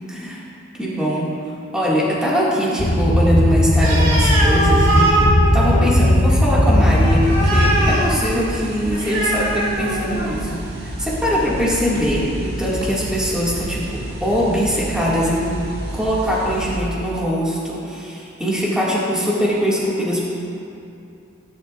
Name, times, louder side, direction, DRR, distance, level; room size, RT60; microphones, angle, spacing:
voice 1, 0.1-0.4 0.8-1.3 1.7-10.6 11.0-15.6 15.9-20.2, equal, 5° right, -8 dB, 2.0 m, -22 dB
sound 1, 2.8-8.0, left 1 dB, 45° left, 0.9 m, -17 dB
Animal, 3.8-10.5, right 1 dB, 80° right, 2.8 m, -22 dB
sound 2, 7.2-16.8, right 1 dB, 55° right, 1.6 m, -31 dB
17.5 x 11.0 x 2.5 m, 2.7 s
head